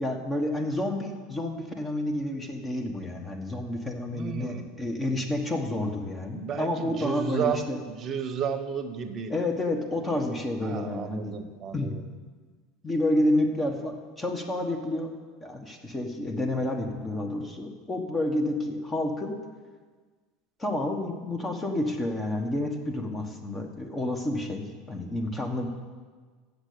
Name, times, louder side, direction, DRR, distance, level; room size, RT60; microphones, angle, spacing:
voice 1, 0.0-7.8 9.3-11.4 11.7-12.0 12.8-15.1 15.4-19.4 20.6-25.7, left 1 dB, 20° left, 3 dB, 1.3 m, -29 dB
voice 2, 4.1-4.7 6.3-9.3 10.6-12.1, right 7 dB, 35° right, 8 dB, 0.9 m, -32 dB
7.9 x 6.8 x 8.4 m, 1.5 s
supercardioid pair, 110°, 0 cm